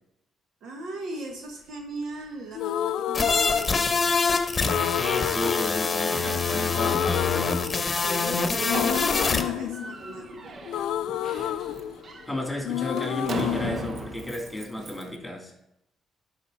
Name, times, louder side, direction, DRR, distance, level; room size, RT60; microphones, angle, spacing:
voice 1, 0.6-4.1 7.9-10.6, right 3 dB, 75° right, 2 dB, 1.4 m, -38 dB
sound 1, 2.5-4.2 4.7-6.4 6.7-8.3 8.7-12.4 12.6-14.7, left 11 dB, 85° left, 0.3 m, -30 dB
sound 2, 3.1-9.4, left 4 dB, 30° left, 1.0 m, -25 dB
voice 2, 4.9-7.5 12.3-15.5, left 1 dB, 5° left, 1 dB, 3.0 m, -33 dB
Slam, 7.7-15.2, right 3 dB, 50° right, 0.8 m, -39 dB
11.5 x 4.9 x 4.0 m, 0.82 s
cardioid pair, 90°, 0 cm